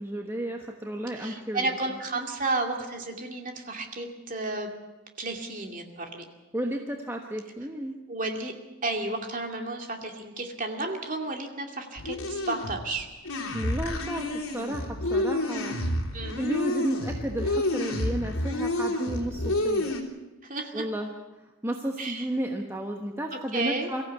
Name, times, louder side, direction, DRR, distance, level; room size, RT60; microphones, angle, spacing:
voice 1, 0.0-1.8 6.5-7.9 13.5-15.8 16.4-20.0 20.7-21.1 21.6-24.0, right 1 dB, 10° right, 2 dB, 1.1 m, -32 dB
voice 2, 1.1-4.7 5.2-6.2 8.1-8.5 8.8-13.1 16.1-16.4 20.4-20.9 22.0-22.3 23.3-23.9, right 2 dB, 35° right, 3 dB, 2.4 m, -32 dB
sound 1, 12.0-20.0, left 1 dB, 80° left, 3.1 m, -29 dB
23.5 x 14.5 x 8.3 m, 1.1 s
head